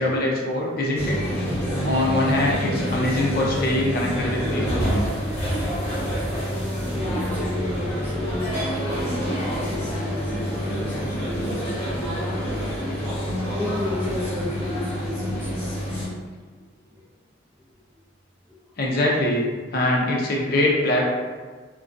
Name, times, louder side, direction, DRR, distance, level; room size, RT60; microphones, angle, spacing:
voice 1, 0.0-1.2 1.8-4.9 18.8-19.4 19.7-21.0, left 1 dB, 50° left, -2 dB, 0.4 m, -23 dB
sound 1, 0.9-16.0, equal, 35° left, 1.0 m, -27 dB
voice 2, 1.3-2.0 6.7-13.1 13.5-16.2 16.6-17.0, left 2 dB, 10° right, -9 dB, 0.7 m, -34 dB
2.3 x 2.2 x 2.5 m, 1.4 s
head